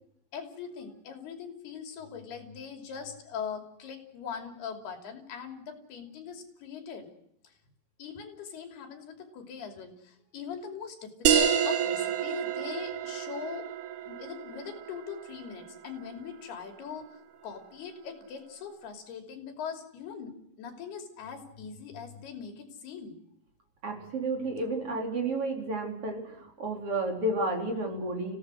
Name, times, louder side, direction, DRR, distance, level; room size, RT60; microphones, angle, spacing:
voice 1, 0.3-7.1 7.4-7.5 8.0-13.7 14.0-17.1 17.4-23.2, left 6 dB, 85° left, 5 dB, 5.0 m, -41 dB
sound 1, 11.3-16.3, right 9 dB, 65° right, 2.5 m, -29 dB
voice 2, 23.8-28.4, right 2 dB, 35° right, 1 dB, 4.7 m, -31 dB
29.5 x 17.0 x 6.4 m, 0.75 s
omnidirectional pair, 4.4 m